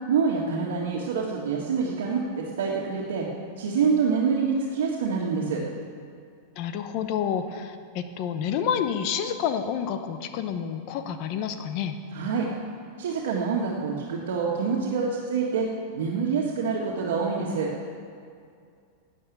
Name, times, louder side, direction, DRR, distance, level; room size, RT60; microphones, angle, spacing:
voice 1, 0.1-3.3 3.6-5.6 12.1-12.5 13.0-15.7 15.9-17.7, right 5 dB, 85° right, -4 dB, 1.9 m, -26 dB
voice 2, 6.6-12.0, left 8 dB, 35° left, 9 dB, 0.8 m, -29 dB
12.5 x 8.5 x 8.3 m, 2.3 s
supercardioid pair, 170°, 0 cm